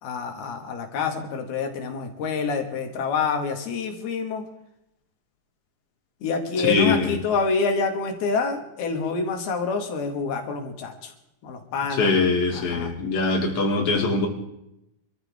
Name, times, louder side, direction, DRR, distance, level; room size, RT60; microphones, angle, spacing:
voice 1, 0.0-4.4 6.2-11.1 11.4-12.2 12.5-13.0, left 5 dB, 85° left, 4 dB, 4.0 m, -27 dB
voice 2, 6.6-7.2 12.0-14.3, left 3 dB, 50° left, 0 dB, 4.1 m, -22 dB
26.5 x 14.5 x 3.7 m, 0.84 s
omnidirectional pair, 4.3 m